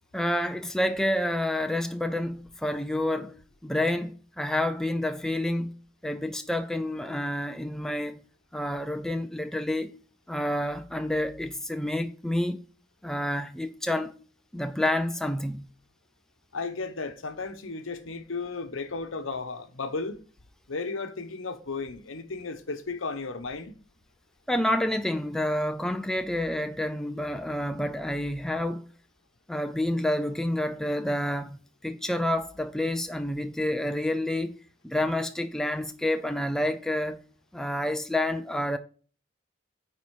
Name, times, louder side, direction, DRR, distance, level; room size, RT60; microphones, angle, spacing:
voice 1, 0.1-5.7 6.0-8.2 8.5-10.0 10.3-12.6 13.0-14.1 14.5-15.7 24.5-28.8 29.5-34.6 34.8-37.2 37.5-38.8, left 1 dB, ahead, 0.4 m, -29 dB
voice 2, 16.5-20.2 20.7-23.8, left 4 dB, 80° left, 0.9 m, -34 dB
9.6 x 4.2 x 4.6 m
head